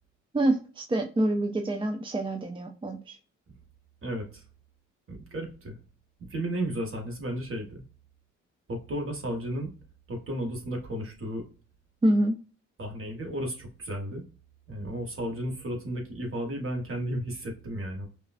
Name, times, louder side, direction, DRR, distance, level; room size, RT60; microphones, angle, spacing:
voice 1, 0.3-3.2 12.0-12.4, right 1 dB, 15° right, 5 dB, 0.5 m, -26 dB
voice 2, 4.0-4.4 5.1-5.8 6.2-7.8 8.7-9.7 10.1-11.4 12.8-14.2 14.7-18.1, right 1 dB, 45° right, 1 dB, 1.7 m, -33 dB
5.2 x 2.5 x 2.5 m, 0.36 s
cardioid pair, 90°, 30 cm